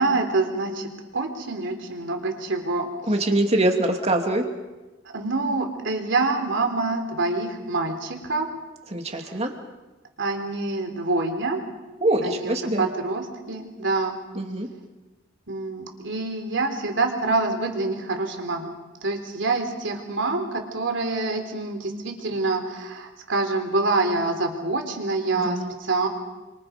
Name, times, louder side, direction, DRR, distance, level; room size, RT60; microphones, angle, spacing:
voice 1, 0.0-2.9 3.3-3.4 5.1-8.5 9.2-9.3 10.2-11.6 12.2-14.2 15.5-18.7 19.0-26.1, right 3 dB, 65° right, 4 dB, 3.8 m, -26 dB
voice 2, 3.1-4.4 8.9-9.5 12.0-12.9 14.3-14.7 25.4-25.7, right 1 dB, 35° right, 3 dB, 2.7 m, -23 dB
30.0 x 25.5 x 5.3 m, 1.2 s
head